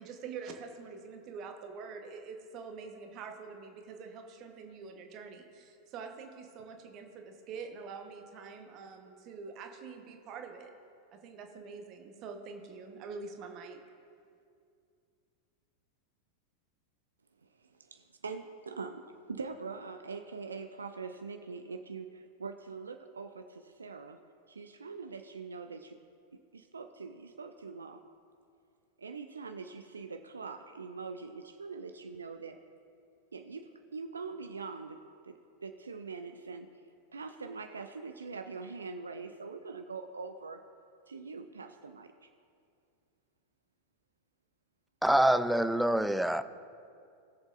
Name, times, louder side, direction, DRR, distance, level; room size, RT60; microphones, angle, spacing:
voice 1, 0.0-10.7 11.2-13.8, right 5 dB, 35° right, 1.1 m, -45 dB
voice 2, 17.6-24.2 24.5-26.0 26.3-28.0 29.0-32.6 33.3-35.3 35.6-36.7 37.1-40.6 41.1-42.3, right 4 dB, 75° right, 0.4 m, -43 dB
voice 3, 45.0-46.4, right 1 dB, 5° right, 0.3 m, -25 dB
20.0 x 7.0 x 2.6 m
figure-of-eight pair, 90°, 0 cm